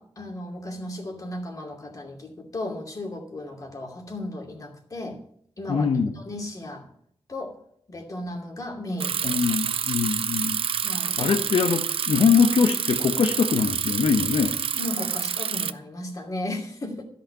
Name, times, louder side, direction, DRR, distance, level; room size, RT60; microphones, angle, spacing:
voice 1, 0.0-5.2 5.6-6.9 7.3-7.6 7.9-10.0 10.8-11.2 14.7-17.0, left 1 dB, 35° left, 2 dB, 2.6 m, -35 dB
voice 2, 5.7-6.1 9.2-10.6 11.2-14.6, left 6 dB, 75° left, 5 dB, 0.9 m, -22 dB
Bicycle, 9.0-15.7, right 7 dB, 75° right, 0.5 m, -28 dB
13.0 x 5.8 x 8.7 m, 0.63 s
wide cardioid pair, 135°, 10 cm